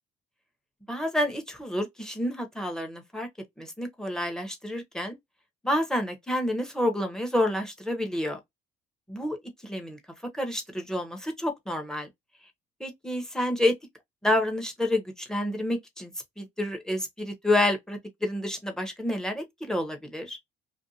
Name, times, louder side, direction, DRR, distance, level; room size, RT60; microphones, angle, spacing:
voice 1, 0.9-3.3 3.6-5.2 5.6-8.4 9.1-9.4 9.6-10.0 10.3-12.1 12.8-13.7 14.2-16.1 16.4-20.4, left 1 dB, 5° left, 0.8 m, -29 dB
2.5 x 2.2 x 2.6 m
cardioid pair, 110°, 17 cm